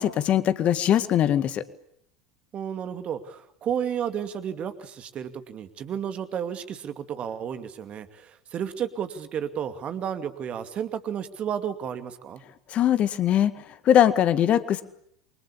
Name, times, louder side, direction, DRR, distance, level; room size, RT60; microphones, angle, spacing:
voice 1, 0.0-1.6 12.7-13.5 13.9-14.8, left 10 dB, 40° left, 13 dB, 2.0 m, -21 dB
voice 2, 2.5-12.4, right 8 dB, 35° right, 10 dB, 2.5 m, -32 dB
28.5 x 24.5 x 8.5 m, 0.73 s
figure-of-eight pair, 75°, 3 cm